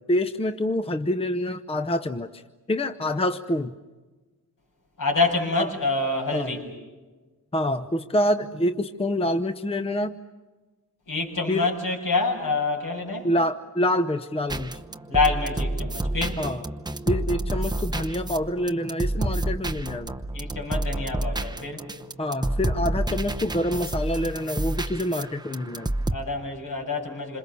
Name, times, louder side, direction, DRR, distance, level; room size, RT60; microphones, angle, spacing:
voice 1, 0.0-2.4 2.7-3.7 5.6-5.7 6.3-6.6 7.5-10.1 11.5-11.7 13.2-14.7 16.4-16.6 17.1-20.1 22.2-25.9, left 1 dB, 15° left, 10 dB, 0.8 m, -26 dB
voice 2, 5.0-6.6 11.1-13.3 15.1-16.4 20.3-21.8 26.1-27.4, left 3 dB, 65° left, 1 dB, 7.4 m, -26 dB
sound 1, 14.5-26.2, right 1 dB, 10° right, 0.8 m, -29 dB
28.0 x 26.5 x 7.0 m, 1.3 s
wide cardioid pair, 140°, 35 cm